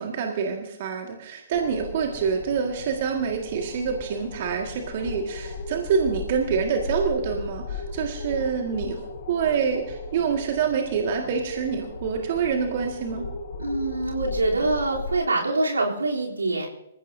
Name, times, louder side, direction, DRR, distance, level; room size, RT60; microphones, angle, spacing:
voice 1, 0.0-13.3, right 6 dB, 45° right, 2 dB, 1.9 m, -26 dB
sound 1, 1.5-15.2, left 3 dB, 50° left, 7.0 m, -36 dB
voice 2, 13.6-16.7, right 2 dB, 75° right, -2 dB, 3.4 m, -25 dB
26.5 x 15.0 x 2.7 m, 0.89 s
figure-of-eight pair, 125°, 0 cm